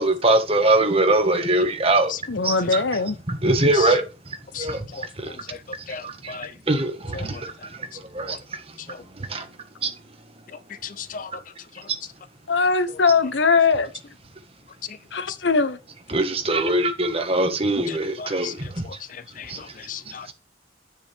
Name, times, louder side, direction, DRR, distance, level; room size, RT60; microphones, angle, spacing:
voice 1, 0.0-2.1 2.4-2.8 3.3-5.4 5.8-6.4 6.7-8.8 9.1-9.5 9.8-9.9 16.1-18.9 19.4-19.7 20.0-20.3, right 2 dB, 30° right, 1.6 m, -23 dB
voice 2, 2.3-3.2 12.5-13.9 15.1-15.8, left 4 dB, 75° left, 0.9 m, -20 dB
voice 3, 5.9-6.5 8.3-8.4 8.9-9.0 10.8-11.3 17.9-18.5 19.1-20.3, left 7 dB, 45° left, 0.4 m, -36 dB
9.8 x 9.1 x 3.5 m
head